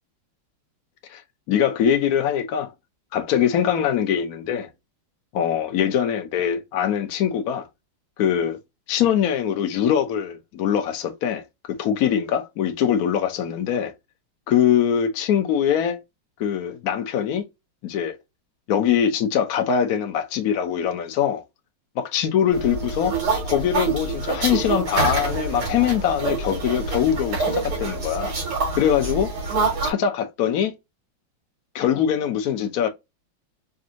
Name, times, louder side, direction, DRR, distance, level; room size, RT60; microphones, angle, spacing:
voice 1, 1.5-2.7 3.1-4.7 5.3-7.7 8.2-8.6 8.9-13.9 14.5-16.0 16.4-17.4 17.8-18.2 18.7-21.4 22.0-23.2 23.4-28.3 28.8-29.3 29.8-30.7 31.7-32.9, left 9 dB, 65° left, 0.9 m, -22 dB
sound 1, 22.5-29.9, right 4 dB, 75° right, 3.0 m, -26 dB
5.3 x 2.5 x 2.7 m
omnidirectional pair, 2.4 m